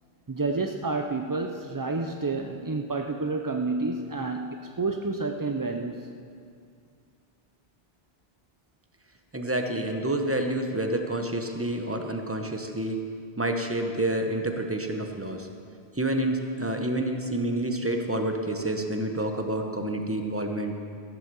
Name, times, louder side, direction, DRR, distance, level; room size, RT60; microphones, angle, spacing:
voice 1, 0.3-6.1, right 3 dB, 35° right, 4 dB, 0.3 m, -29 dB
voice 2, 9.3-13.0 13.4-15.5 16.0-20.7, right 1 dB, 15° right, 4 dB, 0.9 m, -28 dB
14.5 x 7.9 x 6.9 m, 2.3 s
omnidirectional pair, 1.1 m